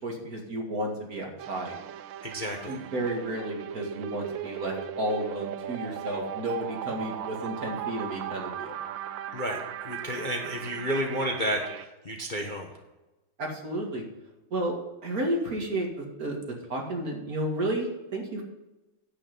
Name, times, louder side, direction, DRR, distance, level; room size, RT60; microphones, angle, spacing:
voice 1, 0.0-1.8 2.7-8.8 13.4-14.0 14.5-18.4, right 1 dB, 45° right, 0 dB, 2.5 m, -32 dB
sound 1, 1.4-11.9, right 10 dB, 75° right, 1.3 m, -37 dB
voice 2, 2.2-2.8 9.3-9.6 9.8-12.7, equal, 30° left, 1 dB, 1.1 m, -31 dB
9.9 x 8.8 x 5.4 m, 1.0 s
omnidirectional pair, 2.2 m